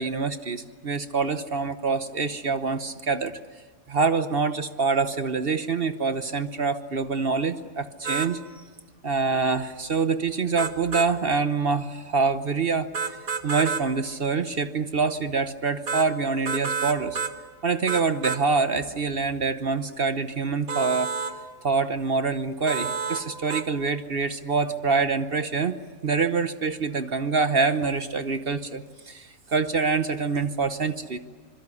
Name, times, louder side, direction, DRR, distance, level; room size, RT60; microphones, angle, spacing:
voice 1, 0.0-3.4 3.9-8.4 9.0-12.9 13.4-17.2 17.6-21.1 21.6-25.8 26.0-31.2, right 4 dB, 45° right, 10 dB, 1.0 m, -25 dB
sound 1, 8.0-8.3 10.6-11.1 12.9-13.9 15.9-16.1 16.5-17.4 17.9-18.4 20.7-21.3 22.7-23.2 23.5-23.7, right 5 dB, 65° right, 1.8 m, -29 dB
26.0 x 22.5 x 9.8 m, 1.4 s
omnidirectional pair, 1.7 m